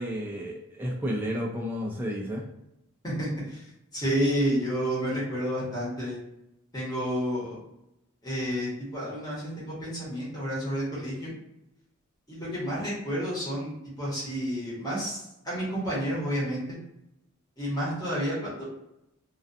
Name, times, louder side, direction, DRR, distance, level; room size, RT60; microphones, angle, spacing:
voice 1, 0.0-2.4, equal, 10° right, -3 dB, 0.3 m, -31 dB
voice 2, 3.0-3.6 3.9-6.2 6.7-7.6 8.2-11.3 12.3-16.8 17.6-18.6, equal, 20° left, -8 dB, 1.0 m, -30 dB
2.3 x 2.3 x 2.5 m, 0.85 s
head